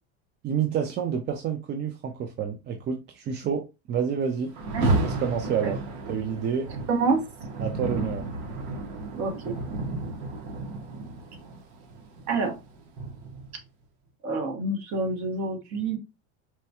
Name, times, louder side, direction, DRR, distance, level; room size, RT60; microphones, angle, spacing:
voice 1, 0.4-3.6 3.9-4.5 5.0-5.8 6.1-6.7 7.6-8.2, right 7 dB, 30° right, 0.4 m, -28 dB
Rain, 4.5-13.6, right 2 dB, 75° right, 1.2 m, -32 dB
voice 2, 6.9-7.2 9.1-9.6 12.3-12.6 14.2-16.0, right 3 dB, 50° right, 1.4 m, -27 dB
4.3 x 2.3 x 2.8 m
supercardioid pair, 130°, 37 cm